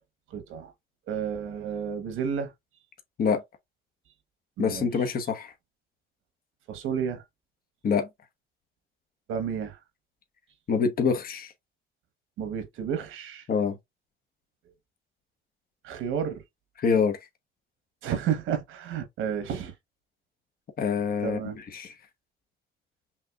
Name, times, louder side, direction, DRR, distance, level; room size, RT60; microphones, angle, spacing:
voice 1, 0.3-0.7 1.1-2.5 4.6-4.9 6.7-7.2 9.3-9.8 12.4-13.4 15.8-16.4 18.0-19.7 21.2-21.6, right 7 dB, 90° right, 1.2 m, -31 dB
voice 2, 4.6-5.5 7.8-8.1 10.7-11.5 13.5-13.8 16.8-17.2 20.8-21.9, left 6 dB, 50° left, 0.9 m, -26 dB
5.8 x 2.8 x 2.4 m
cardioid pair, 90°, 20 cm